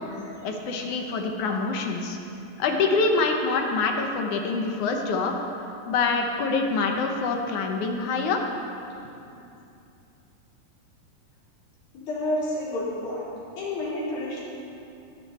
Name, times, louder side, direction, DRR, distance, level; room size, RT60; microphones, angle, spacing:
voice 1, 0.4-2.2 2.6-5.3 5.9-8.4, left 4 dB, 65° left, 3 dB, 2.3 m, -25 dB
voice 2, 11.9-13.3 13.6-14.4, left 1 dB, 85° left, -7 dB, 5.6 m, -30 dB
20.5 x 11.0 x 4.4 m, 2.7 s
omnidirectional pair, 4.1 m